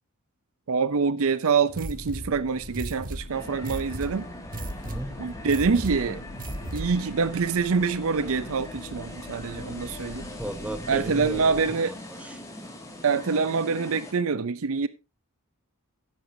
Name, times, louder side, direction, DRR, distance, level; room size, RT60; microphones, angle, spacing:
voice 1, 0.7-4.3 5.2-6.2 6.7-10.3 10.9-11.9 13.0-14.9, right 5 dB, 65° right, 0.6 m, -25 dB
sound 1, 1.7-7.1, right 1 dB, 40° right, 1.3 m, -36 dB
sound 2, 1.9-11.7, left 2 dB, 85° left, 1.2 m, -45 dB
sound 3, 3.3-14.1, left 1 dB, 15° left, 2.3 m, -41 dB
voice 2, 4.8-5.2 10.4-12.4, right 1 dB, 5° right, 1.2 m, -36 dB
16.0 x 8.1 x 2.8 m
head